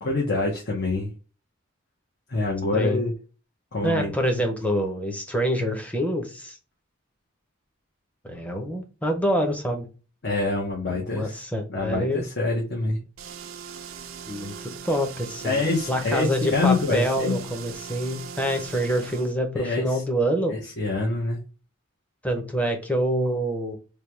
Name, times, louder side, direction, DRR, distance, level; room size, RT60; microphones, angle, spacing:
voice 1, 0.0-1.1 2.3-3.1 3.7-4.1 10.2-11.4 11.7-13.0 15.4-17.4 19.5-20.0 20.5-21.4, left 3 dB, 55° left, 1.0 m, -26 dB
voice 2, 3.8-6.6 8.2-9.9 10.9-12.2 14.3-15.6 15.9-20.5 22.2-23.8, equal, 5° left, 0.8 m, -26 dB
sound 1, 13.2-19.3, right 7 dB, 80° right, 0.5 m, -40 dB
3.4 x 2.3 x 4.4 m
head